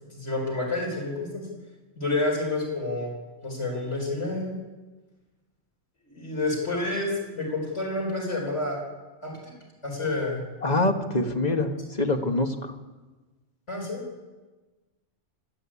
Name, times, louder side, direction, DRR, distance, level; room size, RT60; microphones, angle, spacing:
voice 1, 0.1-1.5 2.0-3.1 3.4-4.5 6.1-8.8 9.2-9.5 9.8-10.4 11.5-11.6 13.7-14.0, left 2 dB, 75° left, -1 dB, 4.9 m, -29 dB
voice 2, 10.6-11.7 12.0-12.7, left 2 dB, 35° left, 4 dB, 1.8 m, -24 dB
28.5 x 12.0 x 8.6 m, 1.2 s
omnidirectional pair, 1.2 m